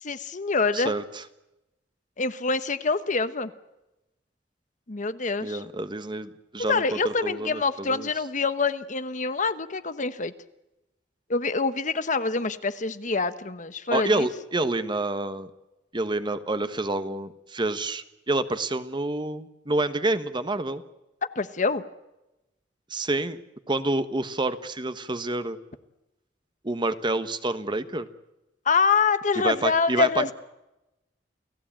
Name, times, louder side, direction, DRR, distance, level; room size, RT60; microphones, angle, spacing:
voice 1, 0.0-0.9 2.2-3.5 4.9-5.6 6.7-10.3 11.3-14.3 21.3-21.8 28.6-30.3, left 4 dB, 45° left, 12 dB, 1.1 m, -25 dB
voice 2, 5.4-8.1 13.9-15.5 15.9-20.8 22.9-23.4 23.7-25.6 26.6-28.1 29.4-30.3, right 2 dB, 25° right, 11 dB, 1.3 m, -28 dB
29.5 x 17.0 x 8.9 m, 0.96 s
head